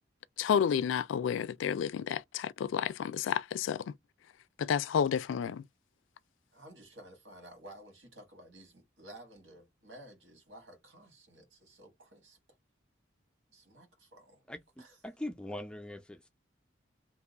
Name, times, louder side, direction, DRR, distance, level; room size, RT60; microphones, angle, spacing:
voice 1, 0.4-3.8 4.6-5.6, left 7 dB, 90° left, 0.3 m, -30 dB
voice 2, 6.5-12.4 13.5-14.4 14.8-15.0, right 1 dB, 80° right, 1.5 m, -53 dB
voice 3, 14.5-16.3, left 1 dB, 5° left, 0.4 m, -42 dB
2.9 x 2.2 x 3.9 m
head